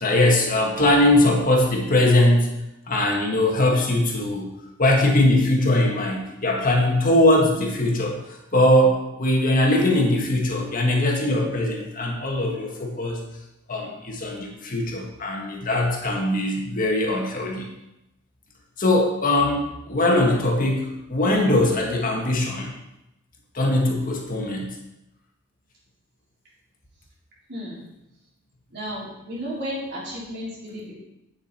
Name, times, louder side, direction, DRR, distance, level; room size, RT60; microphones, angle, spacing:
voice 1, 0.0-2.5 2.9-4.5 4.8-13.2 13.7-17.7 18.8-22.7 23.5-24.7, left 1 dB, 40° left, 0 dB, 1.6 m, -21 dB
voice 2, 27.5-27.8 28.7-30.9, equal, 55° right, -6 dB, 4.0 m, -33 dB
8.9 x 7.4 x 4.4 m, 0.91 s
head